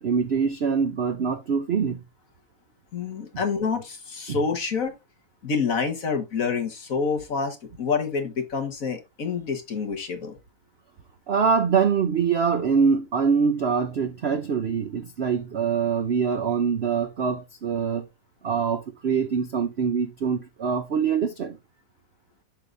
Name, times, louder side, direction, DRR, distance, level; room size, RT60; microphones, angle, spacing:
voice 1, 0.0-2.0 4.3-4.4 11.3-18.1 18.4-21.6, right 6 dB, 65° right, 0.6 m, -24 dB
voice 2, 2.9-5.0 5.4-10.4, left 5 dB, 50° left, 1.7 m, -27 dB
7.7 x 6.8 x 2.6 m
omnidirectional pair, 1.9 m